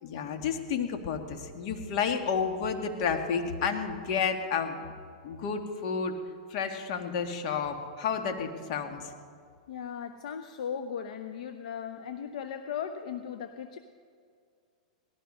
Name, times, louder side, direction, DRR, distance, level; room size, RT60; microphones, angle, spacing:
voice 1, 0.0-4.9 5.2-6.2 6.5-9.1, left 6 dB, 55° left, 5 dB, 1.9 m, -31 dB
voice 2, 9.7-13.8, left 7 dB, 70° left, 8 dB, 0.8 m, -37 dB
18.5 x 13.5 x 5.5 m, 2.2 s
hypercardioid pair, 130°, 4 cm